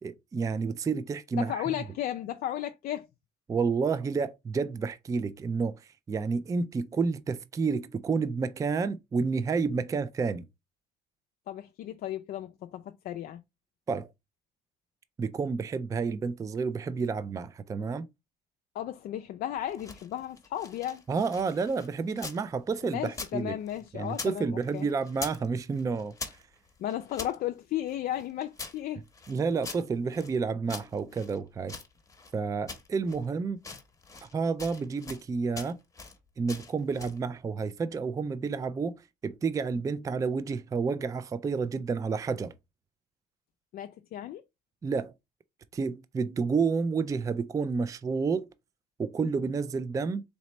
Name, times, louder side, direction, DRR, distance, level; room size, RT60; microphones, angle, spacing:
voice 1, 0.0-1.8 3.5-10.4 13.9-14.1 15.2-18.1 21.1-23.5 23.9-26.1 29.3-31.7 32.3-33.6 34.2-35.8 36.4-42.5 44.8-45.1 45.7-48.5 49.0-50.2, right 5 dB, 20° right, 0.3 m, -30 dB
voice 2, 1.4-3.1 11.5-13.4 18.7-21.0 22.8-24.9 26.8-29.0 43.7-44.4, left 12 dB, 60° left, 0.4 m, -34 dB
sound 1, 19.6-22.4 22.7-24.4 24.6-25.5 25.7-27.4 27.9-30.4 30.7-32.3 32.7-33.3 33.6-34.3 34.6-35.3 35.5-36.2 36.5-37.2, left 4 dB, 20° left, 1.0 m, -43 dB
4.1 x 3.0 x 3.1 m
cardioid pair, 110°, 17 cm